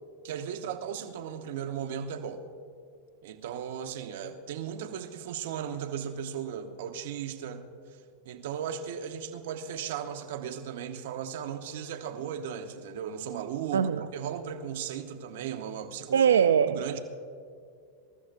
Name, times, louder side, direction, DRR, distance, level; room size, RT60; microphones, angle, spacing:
voice 1, 0.2-2.4 3.2-7.7 7.9-8.0 8.2-16.2 16.7-17.0, right 8 dB, 70° right, 7 dB, 1.2 m, -36 dB
voice 2, 13.7-14.1 16.1-16.8, right 7 dB, 90° right, 10 dB, 0.4 m, -22 dB
26.5 x 13.5 x 2.7 m, 2.3 s
hypercardioid pair, 110°, 0 cm